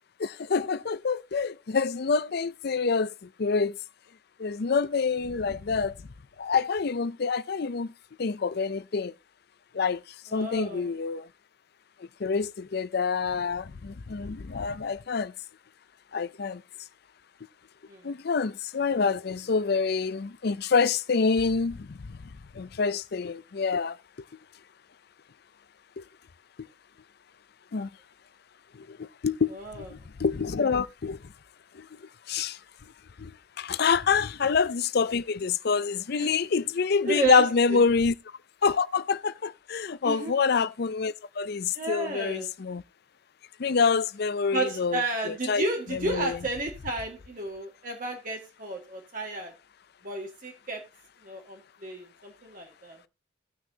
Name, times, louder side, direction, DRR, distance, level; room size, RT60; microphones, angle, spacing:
voice 1, 0.2-3.1 3.4-3.7 4.4-5.9 6.4-7.9 8.2-9.1 9.7-10.0 10.3-11.3 12.2-15.3 16.1-16.6 18.0-21.8 22.6-23.9 26.0-26.1 27.7-27.9 29.0-29.5 30.2-31.2 32.3-32.6 33.2-33.3 33.6-38.1 38.6-42.8 43.6-45.6 45.9-46.4, left 5 dB, 55° left, 0.5 m, -26 dB
voice 2, 10.3-10.9 17.9-18.0 29.5-29.9 36.2-36.3 37.1-37.8 40.0-40.3 41.7-42.5 44.5-49.5 50.0-50.8 51.2-53.0, right 2 dB, 45° right, 1.8 m, -32 dB
17.5 x 6.1 x 2.8 m
head